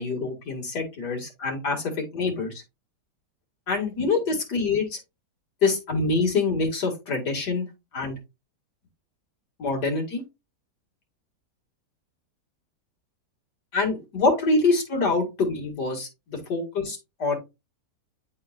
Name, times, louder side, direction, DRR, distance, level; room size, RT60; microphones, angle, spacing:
voice 1, 0.0-2.6 3.7-5.0 5.6-7.7 7.9-8.2 9.6-10.2 13.7-17.4, left 3 dB, 75° left, 2 dB, 2.6 m, -25 dB
10.5 x 3.8 x 2.4 m, 0.24 s
omnidirectional pair, 1.8 m